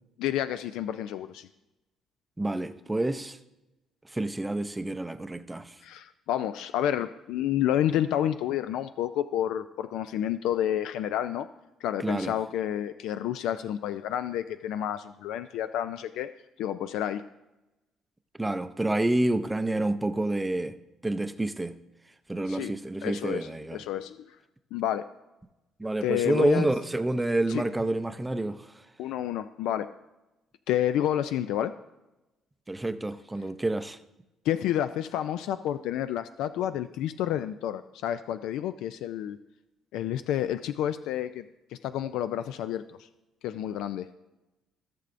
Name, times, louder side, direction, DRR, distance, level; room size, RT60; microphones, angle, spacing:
voice 1, 0.2-1.5 5.8-11.5 11.8-16.3 16.6-17.2 22.5-22.7 23.0-24.2 24.7-25.1 26.0-26.7 27.5-27.6 29.0-29.9 30.7-31.7 34.5-39.4 39.9-41.5 41.8-42.8 43.4-44.1, left 11 dB, 85° left, 11 dB, 0.3 m, -29 dB
voice 2, 2.4-3.4 4.1-5.7 12.0-12.3 18.4-20.7 21.0-21.8 22.3-23.8 25.8-28.7 32.7-34.0, right 2 dB, 10° right, 10 dB, 0.5 m, -28 dB
16.5 x 6.8 x 2.6 m, 0.98 s
cardioid pair, 135°, 0 cm